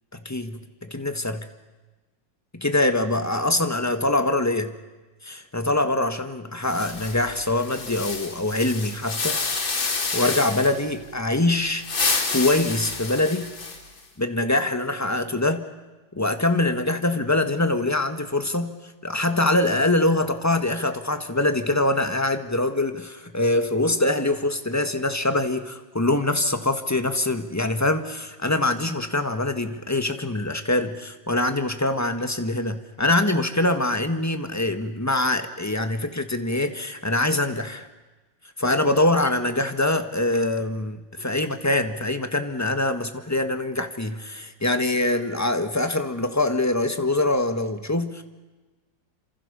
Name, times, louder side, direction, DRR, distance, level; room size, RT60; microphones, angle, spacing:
voice 1, 0.1-0.6 0.9-1.5 2.5-4.7 5.2-9.4 10.1-11.8 12.3-13.5 14.2-15.7 16.1-37.9 38.6-48.2, left 2 dB, 10° left, 7 dB, 1.5 m, -24 dB
sound 1, 6.6-10.9 11.7-14.0, left 4 dB, 85° left, 5.2 m, -29 dB
28.5 x 27.0 x 7.0 m, 1.2 s
omnidirectional pair, 2.1 m